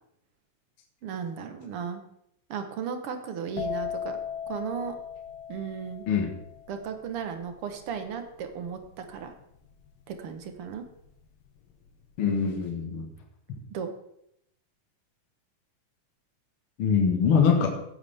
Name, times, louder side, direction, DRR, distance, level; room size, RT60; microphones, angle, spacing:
voice 1, 1.0-2.0 2.5-4.2 4.5-4.9 5.5-6.0 6.7-9.3 10.1-10.8 13.7-13.9, right 7 dB, 60° right, 7 dB, 1.5 m, -35 dB
sound 1, 3.6-11.1 11.4-11.9, left 8 dB, 80° left, 2.6 m, -38 dB
voice 2, 12.2-13.1 16.8-17.7, left 6 dB, 50° left, 1 dB, 2.0 m, -23 dB
16.0 x 9.5 x 3.5 m, 0.76 s
omnidirectional pair, 3.8 m